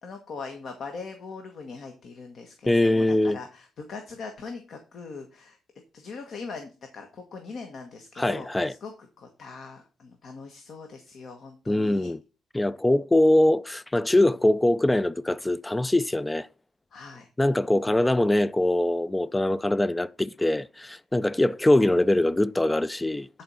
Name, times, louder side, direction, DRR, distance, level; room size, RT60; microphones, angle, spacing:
voice 1, 0.0-5.6 5.9-8.5 8.8-12.1 16.9-17.3, left 4 dB, 60° left, 1.6 m, -41 dB
voice 2, 2.7-3.4 8.2-8.7 11.7-12.2 12.5-16.5 17.4-23.3, left 1 dB, 10° left, 0.4 m, -23 dB
10.5 x 4.6 x 5.5 m
cardioid pair, 90°, 0 cm